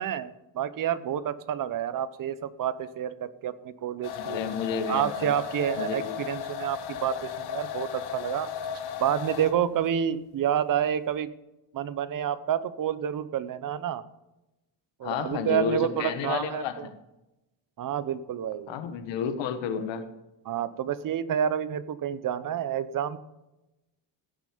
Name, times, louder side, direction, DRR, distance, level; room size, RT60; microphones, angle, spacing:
voice 1, 0.0-4.4 4.9-8.5 9.0-11.3 11.7-14.0 15.0-16.9 17.8-18.8 20.5-23.2, right 9 dB, 50° right, 15 dB, 0.8 m, -29 dB
sound 1, 4.0-9.7, left 8 dB, 65° left, 1.2 m, -36 dB
voice 2, 4.1-5.3 5.8-6.2 15.0-16.9 18.7-20.1, left 7 dB, 90° left, 9 dB, 1.4 m, -31 dB
16.0 x 6.4 x 5.1 m, 0.96 s
cardioid pair, 135°, 43 cm